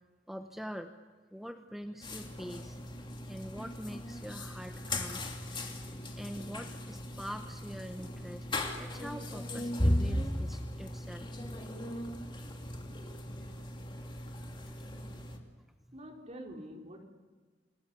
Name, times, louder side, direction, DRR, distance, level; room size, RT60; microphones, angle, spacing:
voice 1, 0.3-0.9 1.3-2.8 3.3-5.9 6.2-8.5 8.8-11.3, equal, ahead, 6 dB, 1.0 m, -44 dB
sound 1, 2.0-15.4, left 1 dB, 25° left, 2.8 m, -37 dB
voice 2, 15.9-17.0, equal, 40° right, 1 dB, 4.4 m, -46 dB
28.0 x 19.0 x 8.5 m, 1.4 s
head